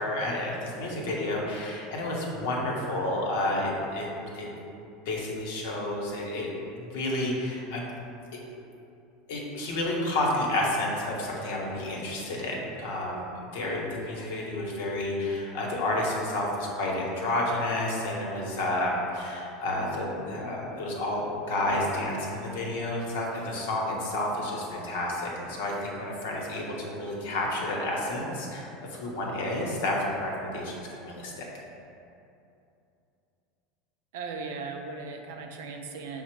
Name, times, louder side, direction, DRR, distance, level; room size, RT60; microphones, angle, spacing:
voice 1, 0.0-4.1 4.3-4.5 5.1-6.5 6.8-7.8 9.3-31.4, left 1 dB, 75° left, -2 dB, 0.8 m, -30 dB
voice 2, 34.1-36.2, right 4 dB, 75° right, 3 dB, 0.4 m, -37 dB
5.7 x 2.0 x 4.5 m, 2.7 s
hypercardioid pair, 95°, 0 cm